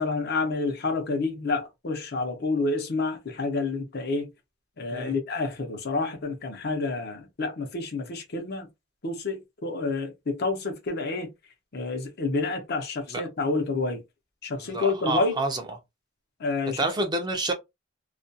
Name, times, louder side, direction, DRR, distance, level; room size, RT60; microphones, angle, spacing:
voice 1, 0.0-4.3 4.8-8.7 9.0-11.3 11.7-14.0 14.4-15.4 16.4-16.8, left 3 dB, 55° left, 0.7 m, -29 dB
voice 2, 14.6-15.7 16.7-17.5, right 3 dB, 20° right, 0.5 m, -29 dB
2.4 x 2.2 x 2.6 m
head